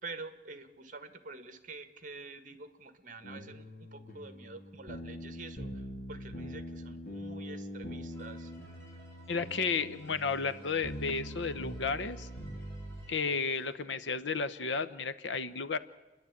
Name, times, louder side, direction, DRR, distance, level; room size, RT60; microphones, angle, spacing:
voice 1, 0.0-5.8 6.1-8.5, right 3 dB, 45° right, 10 dB, 1.6 m, -47 dB
sound 1, 3.2-13.0, equal, 50° left, 2.5 m, -43 dB
sound 2, 8.1-13.7, right 1 dB, 15° left, 6.7 m, -58 dB
voice 2, 9.3-12.3 13.1-15.8, left 5 dB, 85° left, 14 dB, 1.0 m, -33 dB
29.5 x 11.0 x 8.6 m, 1.1 s
head